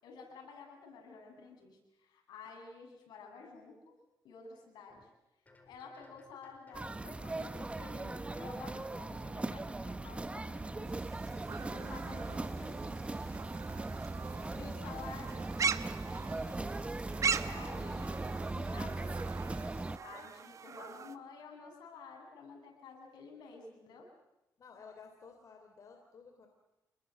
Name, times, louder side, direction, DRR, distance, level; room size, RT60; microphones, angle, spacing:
voice 1, 0.0-3.9 4.2-5.1 5.6-13.6 14.5-15.4 17.4-18.2 18.5-19.6 20.0-24.1, left 5 dB, 85° left, 1 dB, 7.7 m, -51 dB
sound 1, 4.9-5.0 5.5-7.0 7.4-8.9 9.3-10.9 11.3-12.8 13.2-14.7 15.1-16.7 17.1-18.6, left 3 dB, 20° left, 4.4 m, -62 dB
sound 2, 6.7-20.0, right 2 dB, 15° right, 1.1 m, -39 dB
sound 3, 10.9-21.2, right 6 dB, 50° right, 1.0 m, -40 dB
voice 2, 11.5-12.0 14.1-14.8 24.6-26.5, left 5 dB, 50° left, 4 dB, 3.4 m, -56 dB
27.5 x 21.0 x 7.8 m, 0.91 s
cardioid pair, 100°, 7 cm